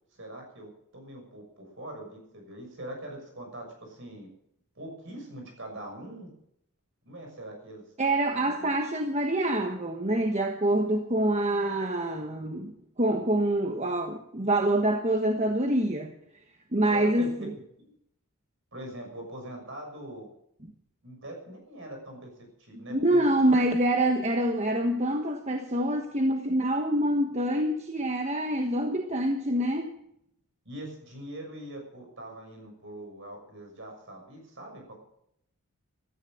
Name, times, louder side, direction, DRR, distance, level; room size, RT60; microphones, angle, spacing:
voice 1, 0.1-4.3 4.7-6.3 7.0-7.8 8.3-8.7 11.5-11.7 16.9-17.5 18.7-20.3 21.0-22.3 22.6-23.3 30.6-34.9, right 1 dB, 55° right, 2 dB, 6.4 m, -42 dB
voice 2, 8.0-16.1 16.7-17.5 22.9-29.9, right 1 dB, 30° right, 4 dB, 1.3 m, -26 dB
15.0 x 14.0 x 6.5 m, 0.75 s
head